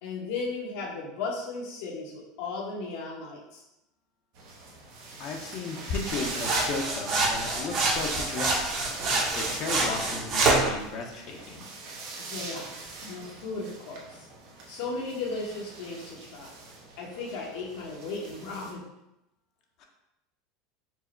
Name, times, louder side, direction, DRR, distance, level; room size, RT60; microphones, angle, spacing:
voice 1, 0.0-3.6 12.2-12.7 13.0-14.3 14.7-16.5 17.0-18.8, left 3 dB, 75° left, -4 dB, 1.1 m, -36 dB
sound 1, 4.3-18.7, right 3 dB, 65° right, 0.9 m, -42 dB
voice 2, 5.2-8.7 9.3-11.6 19.8-19.9, left 4 dB, 50° left, 2 dB, 0.7 m, -35 dB
sound 2, 6.1-10.7, right 3 dB, 45° right, 1.0 m, -26 dB
4.6 x 2.1 x 4.3 m, 0.89 s
supercardioid pair, 125°, 0 cm